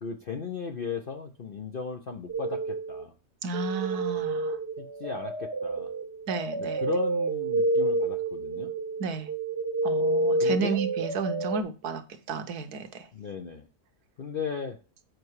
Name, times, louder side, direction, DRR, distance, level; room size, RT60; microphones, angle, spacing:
voice 1, 0.0-3.1 4.8-5.9 6.8-8.7 10.4-10.8 13.1-13.7 14.2-14.8, left 5 dB, 50° left, 0.7 m, -36 dB
sound 1, 2.3-3.0 3.5-11.6, right 2 dB, 50° right, 1.0 m, -29 dB
voice 2, 3.4-4.6 6.3-6.8 9.0-9.3 9.8-12.0 12.3-13.1, right 5 dB, 80° right, 1.5 m, -32 dB
7.8 x 5.3 x 4.7 m
omnidirectional pair, 1.6 m